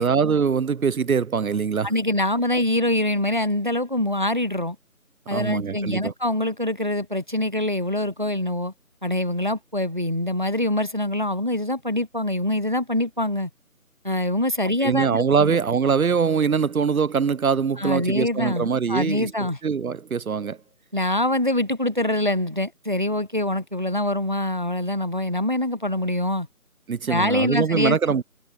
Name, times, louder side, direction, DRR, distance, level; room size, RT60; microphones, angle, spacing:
voice 1, 0.0-1.9 5.3-6.1 14.8-20.6 26.9-28.2, right 6 dB, 70° right, 0.7 m, -23 dB
voice 2, 1.8-4.8 5.3-8.7 9.0-13.5 14.0-15.6 17.8-19.6 20.9-26.5 27.1-28.0, left 1 dB, 35° right, 0.7 m, -24 dB
figure-of-eight pair, 170°, 44 cm